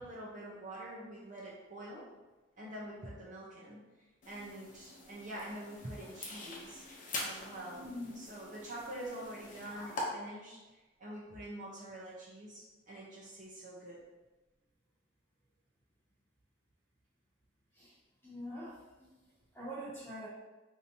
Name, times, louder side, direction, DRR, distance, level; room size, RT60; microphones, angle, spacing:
voice 1, 0.0-2.1 2.6-3.8 4.3-6.8 7.2-7.9 8.1-14.0, right 1 dB, 40° right, -5 dB, 0.8 m, -46 dB
sound 1, 4.2-10.0, left 2 dB, 40° left, 0.7 m, -45 dB
voice 2, 7.7-8.1 17.8-17.9 18.2-18.8 19.5-20.3, equal, 10° left, -8 dB, 1.3 m, -43 dB
4.9 x 2.8 x 2.8 m, 1.1 s
head